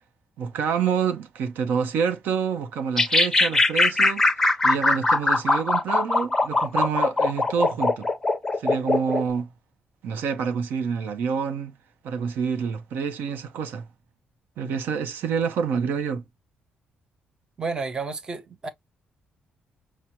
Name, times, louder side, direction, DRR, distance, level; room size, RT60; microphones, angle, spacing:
voice 1, 0.4-8.1 8.6-9.5 10.0-11.7 12.0-13.8 14.6-16.2, right 6 dB, 75° right, 0.7 m, -27 dB
sound 1, 3.0-9.2, left 3 dB, 10° left, 0.6 m, -21 dB
voice 2, 17.6-18.7, right 4 dB, 25° right, 0.7 m, -31 dB
6.0 x 2.1 x 2.8 m
cardioid pair, 175°, 3 cm